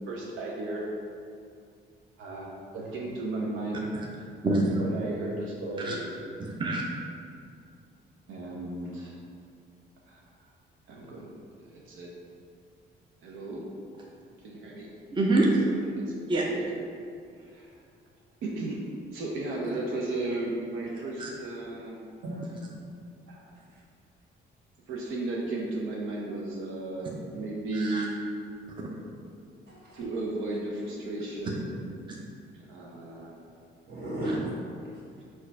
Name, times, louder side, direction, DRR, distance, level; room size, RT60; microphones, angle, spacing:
voice 1, 0.1-0.9 2.2-3.9 4.8-6.0 6.4-6.5 8.3-9.1 10.1-10.2 10.9-11.3 11.6-12.1 13.2-13.7 14.4-14.9 16.0-16.6 17.4-17.8 18.4-22.1 23.3-23.6 24.9-28.2 29.9-32.1 32.7-33.4, right 2 dB, 80° right, -3 dB, 0.6 m, -35 dB
voice 2, 4.4-4.8 5.8-6.0 6.4-6.8 15.1-15.6 16.3-16.4 21.2-21.3 27.7-28.1, right 2 dB, 25° right, -2 dB, 0.6 m, -25 dB
voice 3, 22.2-22.8 23.7-23.8 29.7-30.0 33.9-34.4 34.9-35.2, equal, 55° right, -5 dB, 1.3 m, -36 dB
4.4 x 2.4 x 4.5 m, 2.4 s
cardioid pair, 90°, 20 cm